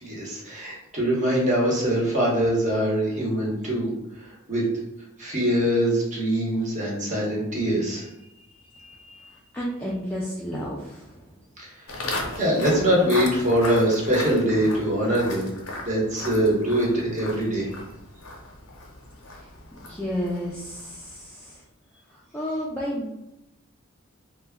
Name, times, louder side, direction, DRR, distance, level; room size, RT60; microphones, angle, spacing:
voice 1, 0.0-3.9 4.5-4.6 5.2-8.0 8.8-8.9 12.4-15.5 15.8-17.7, right 1 dB, 35° right, -4 dB, 0.8 m, -23 dB
voice 2, 9.5-11.3 19.3-21.6 22.1-23.1, equal, 10° left, -6 dB, 0.3 m, -32 dB
Walk footsteps, 11.9-21.1, left 2 dB, 90° left, 0.6 m, -36 dB
2.2 x 2.0 x 3.4 m, 0.88 s
head